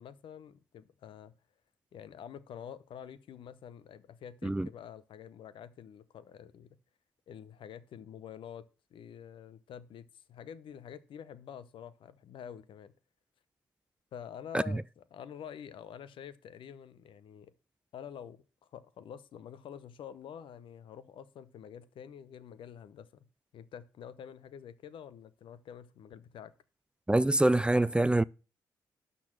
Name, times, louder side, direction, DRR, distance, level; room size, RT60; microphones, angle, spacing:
voice 1, 0.0-1.3 1.9-6.8 7.3-8.6 8.9-12.9 14.1-17.5 17.9-18.4 18.7-23.3 23.5-26.5, left 8 dB, 70° left, 0.9 m, -47 dB
voice 2, 27.1-28.2, right 1 dB, 10° right, 0.4 m, -25 dB
12.0 x 4.2 x 7.4 m
supercardioid pair, 55°, 9 cm